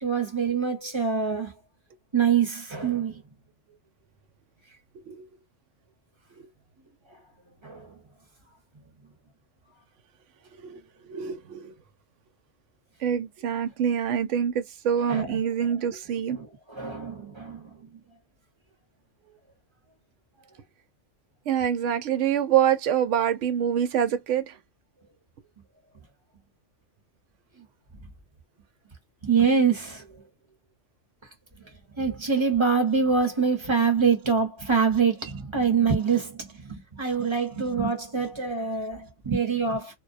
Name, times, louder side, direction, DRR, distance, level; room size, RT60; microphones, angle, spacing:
voice 1, 0.0-1.5 2.1-3.2 7.6-7.9 15.1-15.4 16.3-16.4 16.7-17.7 29.2-30.1 32.0-40.0, right 6 dB, 25° right, 0.8 m, -25 dB
voice 2, 11.1-11.7 13.0-16.4 21.5-24.6, right 9 dB, 85° right, 0.9 m, -25 dB
2.3 x 2.1 x 2.5 m
omnidirectional pair, 1.3 m